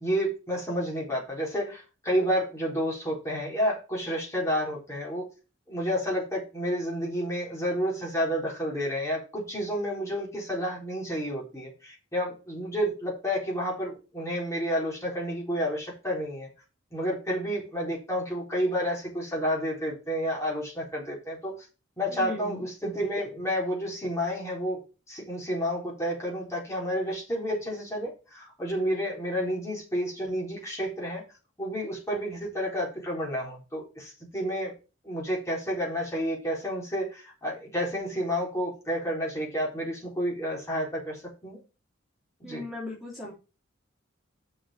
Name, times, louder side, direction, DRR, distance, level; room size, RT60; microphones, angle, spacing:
voice 1, 0.0-5.3 5.7-16.5 16.9-21.6 22.0-24.8 25.1-31.2 31.6-34.7 35.0-41.6 42.4-42.6, equal, 15° left, -3 dB, 4.1 m, -30 dB
voice 2, 22.1-22.7 42.4-43.3, left 2 dB, ahead, -6 dB, 3.4 m, -37 dB
6.5 x 6.2 x 6.9 m, 0.31 s
head